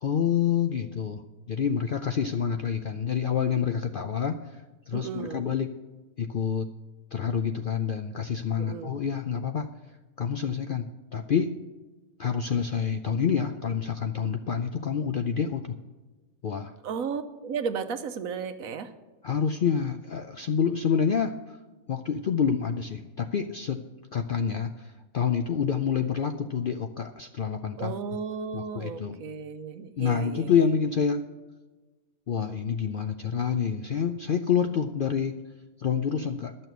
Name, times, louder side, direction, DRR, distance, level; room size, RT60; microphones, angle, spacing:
voice 1, 0.0-1.2 1.5-4.6 4.9-5.7 6.2-6.7 7.1-9.7 10.2-10.9 11.1-11.5 12.2-15.7 16.4-16.7 19.2-21.6 21.9-23.8 24.1-27.9 28.5-29.2 30.0-31.2 32.3-35.4 35.8-36.5, left 7 dB, 60° left, 7 dB, 0.5 m, -27 dB
voice 2, 4.9-5.5 8.6-8.9 16.8-18.9 27.8-30.7, right 6 dB, 75° right, 9 dB, 1.2 m, -34 dB
12.0 x 6.7 x 7.9 m, 1.2 s
omnidirectional pair, 1.5 m